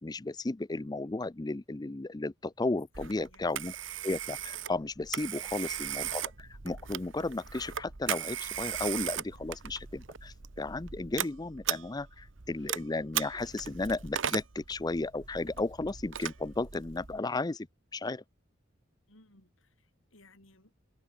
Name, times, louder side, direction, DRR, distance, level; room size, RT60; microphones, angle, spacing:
voice 1, 0.0-3.7 4.0-17.7 17.9-18.2, left 2 dB, 20° left, 0.5 m, -34 dB
voice 2, 2.9-3.6 5.3-5.7 19.1-20.7, left 2 dB, 85° left, 6.0 m, -61 dB
Telephone, 2.9-17.2, right 10 dB, 70° right, 1.3 m, -38 dB
head